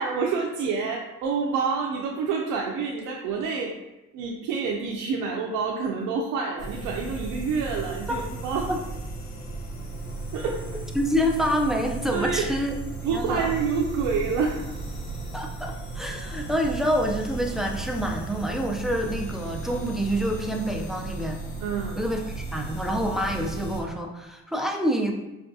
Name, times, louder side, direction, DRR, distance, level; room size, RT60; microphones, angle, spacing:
voice 1, 0.0-3.7 4.1-8.7 10.3-10.7 12.1-12.5 12.9-14.7 21.6-22.0, right 5 dB, 90° right, -1 dB, 0.5 m, -28 dB
sound 1, 6.6-23.8, right 3 dB, 80° left, 1.0 m, -35 dB
voice 2, 11.0-12.8 13.1-13.5 15.3-21.4 22.0-25.1, equal, ahead, 1 dB, 0.4 m, -27 dB
4.7 x 2.2 x 2.6 m, 0.99 s
cardioid pair, 90°, 30 cm